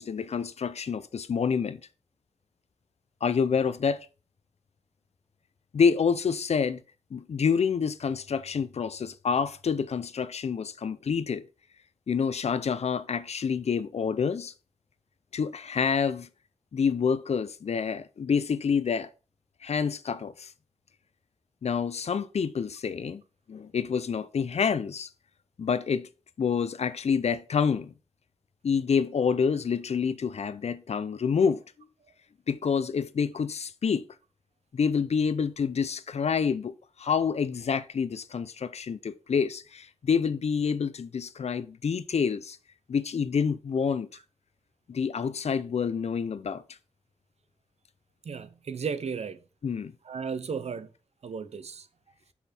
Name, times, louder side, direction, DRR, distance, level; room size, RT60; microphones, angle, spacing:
voice 1, 0.0-1.8 3.2-4.1 5.7-6.8 7.1-11.4 12.1-14.5 15.3-16.3 16.7-19.1 19.6-20.5 21.6-23.2 23.5-25.1 25.6-26.1 26.4-27.9 28.6-31.6 32.5-34.1 34.7-42.6 42.9-44.1 44.9-46.6 49.6-49.9, left 6 dB, 75° left, 0.5 m, -27 dB
voice 2, 48.2-49.4 50.1-50.9 51.2-51.9, right 6 dB, 75° right, 0.6 m, -34 dB
6.2 x 5.6 x 4.2 m
wide cardioid pair, 100°, 11 cm